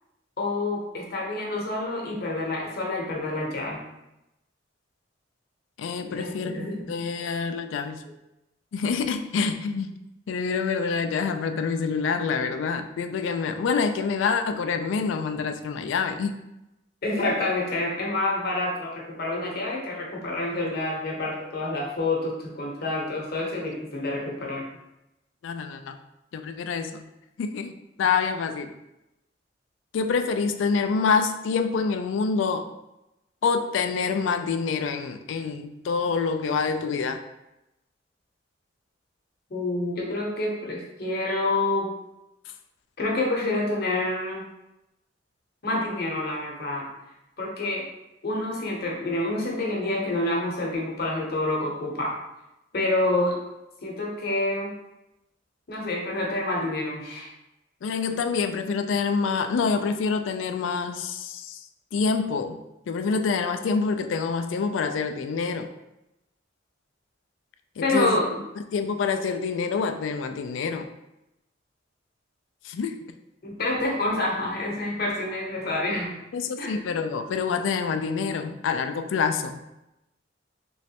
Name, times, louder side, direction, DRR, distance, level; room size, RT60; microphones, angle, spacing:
voice 1, 0.4-3.8 6.1-6.8 17.0-24.6 39.5-41.9 43.0-44.4 45.6-46.9 47.4-47.9 48.2-52.2 52.7-53.4 53.8-54.7 55.7-57.3 67.8-68.2 73.4-76.2 76.6-76.7, left 2 dB, 55° left, -2 dB, 0.8 m, -27 dB
voice 2, 5.8-8.0 8.7-10.0 10.3-16.4 25.4-26.0 26.3-27.1 27.4-27.7 28.0-28.7 29.9-32.7 33.4-37.2 42.5-42.6 57.8-61.7 61.9-62.6 62.9-65.7 67.8-68.2 68.6-70.9 72.6-73.0 76.3-79.6, left 5 dB, 80° left, 8 dB, 0.3 m, -26 dB
3.2 x 3.1 x 2.8 m, 0.92 s
head